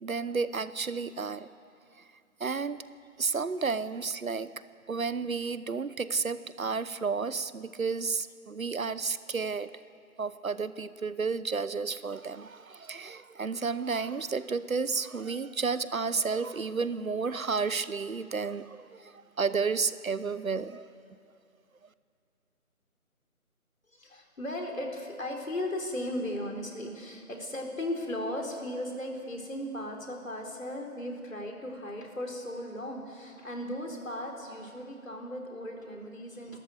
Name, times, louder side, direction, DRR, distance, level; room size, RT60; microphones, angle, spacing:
voice 1, 0.0-1.5 2.4-2.8 3.2-4.5 4.9-9.7 10.2-20.9, right 5 dB, 70° right, 15 dB, 0.9 m, -32 dB
voice 2, 23.9-36.6, left 1 dB, 65° left, 1 dB, 4.0 m, -36 dB
29.5 x 13.5 x 8.1 m, 2.4 s
figure-of-eight pair, 165°, 43 cm